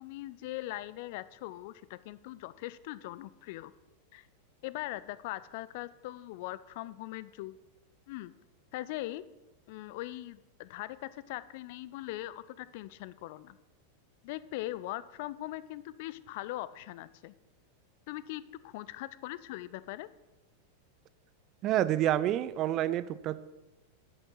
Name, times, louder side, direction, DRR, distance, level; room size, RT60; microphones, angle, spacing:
voice 1, 0.0-3.7 4.1-4.3 4.6-7.6 8.1-8.3 8.7-9.2 9.7-13.6 14.2-17.3 18.1-20.1, left 16 dB, 50° left, 17 dB, 0.5 m, -41 dB
voice 2, 21.6-23.4, right 12 dB, 35° right, 15 dB, 0.5 m, -28 dB
9.4 x 8.1 x 5.7 m, 1.0 s
figure-of-eight pair, 90°, 0 cm